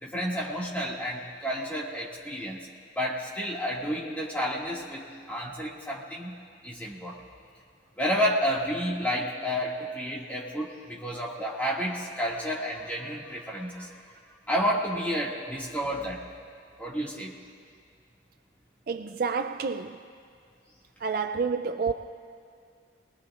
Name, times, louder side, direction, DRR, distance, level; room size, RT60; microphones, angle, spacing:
voice 1, 0.0-2.6 3.0-6.3 6.6-7.2 8.0-14.0 14.5-16.2 16.8-17.3, equal, 10° left, 1.9 m, -30 dB
voice 2, 18.9-20.0 21.0-21.9, right 5 dB, 50° right, 0.4 m, -29 dB
27.0 x 20.0 x 2.5 m
head